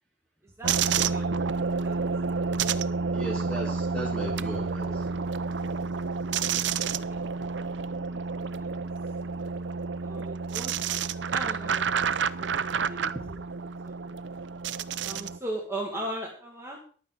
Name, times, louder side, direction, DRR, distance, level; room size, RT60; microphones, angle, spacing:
voice 1, 0.6-2.0 6.8-7.2 8.1-8.7 10.0-10.7 11.3-12.1 12.4-13.2 13.8-14.1 15.0-16.8, right 1 dB, 15° right, -2 dB, 2.1 m, -39 dB
sound 1, 0.6-15.4, right 5 dB, 90° right, 0.7 m, -29 dB
voice 2, 3.1-5.3, right 1 dB, 5° left, -3 dB, 2.8 m, -36 dB
15.0 x 11.0 x 4.8 m, 0.44 s
head